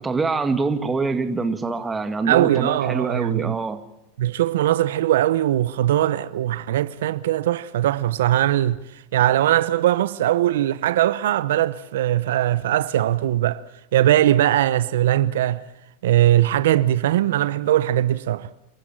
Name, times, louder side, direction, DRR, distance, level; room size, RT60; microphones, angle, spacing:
voice 1, 0.0-3.8, right 4 dB, 15° right, 1.9 m, -25 dB
voice 2, 2.3-3.6 4.2-8.8 9.1-13.6 13.9-15.6 16.0-18.5, right 13 dB, 80° right, 0.8 m, -20 dB
28.5 x 14.0 x 9.0 m
supercardioid pair, 125°, 0 cm